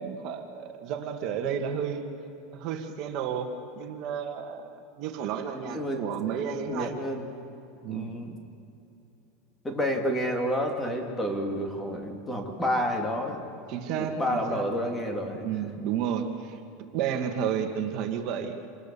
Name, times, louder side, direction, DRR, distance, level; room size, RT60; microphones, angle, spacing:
voice 1, 0.0-2.0 2.5-3.5 3.8-7.0 7.8-8.1 13.7-14.6 15.3-18.6, right 8 dB, 50° right, 5 dB, 2.0 m, -32 dB
voice 2, 5.7-6.0 6.7-7.3 7.9-8.4 9.6-13.5 14.0-15.7, equal, 10° left, 3 dB, 2.7 m, -30 dB
27.0 x 20.0 x 7.0 m, 2.8 s
supercardioid pair, 150°, 0 cm